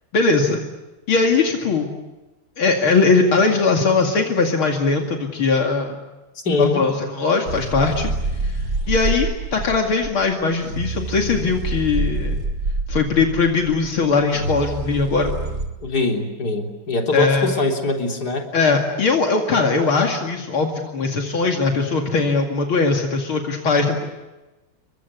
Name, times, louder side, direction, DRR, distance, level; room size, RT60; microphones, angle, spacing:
voice 1, 0.1-0.6 1.1-1.9 2.6-6.0 6.5-8.1 8.4-8.5 8.9-12.4 12.9-15.3 17.1-17.5 18.5-24.2, left 4 dB, 70° left, 2 dB, 3.2 m, -20 dB
voice 2, 6.5-6.8 15.8-18.5, left 2 dB, 45° left, 2 dB, 4.2 m, -22 dB
sound 1, 7.5-15.7, right 2 dB, 45° right, 3.6 m, -27 dB
29.5 x 24.0 x 8.3 m, 1.1 s
omnidirectional pair, 2.4 m